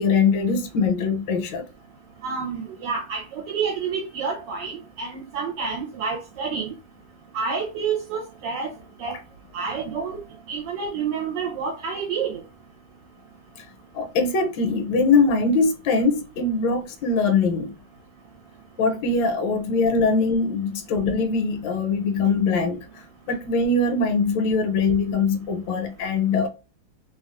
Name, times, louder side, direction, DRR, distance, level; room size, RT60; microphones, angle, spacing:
voice 1, 0.0-1.6 9.1-9.2 13.9-17.7 18.8-22.9 23.3-26.5, left 4 dB, 75° left, 1.4 m, -22 dB
voice 2, 2.2-6.7 7.3-8.7 9.0-9.2 9.5-10.2 10.5-12.4, right 5 dB, 75° right, 1.2 m, -29 dB
3.1 x 2.3 x 2.4 m
omnidirectional pair, 2.1 m